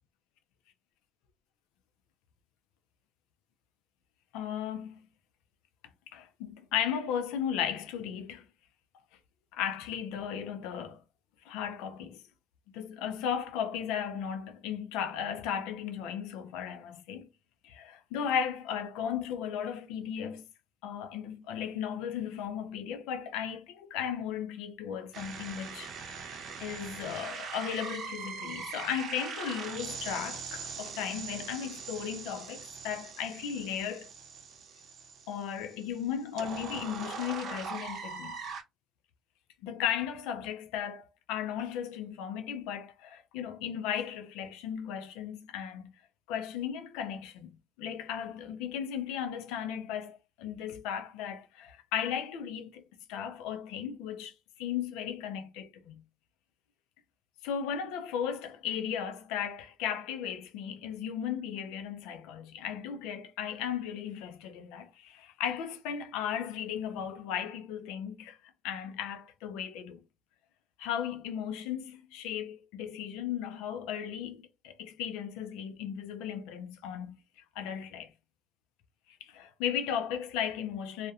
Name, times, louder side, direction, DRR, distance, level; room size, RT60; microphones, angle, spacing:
voice 1, 4.3-5.1 6.1-8.4 9.5-11.0 11.5-12.2 12.7-17.3 17.6-20.5 20.8-34.1 35.3-38.4 39.6-45.9 46.3-47.5 47.8-56.0 57.4-68.4 68.6-70.0 70.8-77.1 77.6-78.1 79.2-81.1, left 8 dB, 85° left, 0.4 m, -36 dB
sound 1, 25.1-38.6, right 5 dB, 65° right, 0.6 m, -41 dB
2.3 x 2.1 x 2.7 m
hypercardioid pair, 60°, 0 cm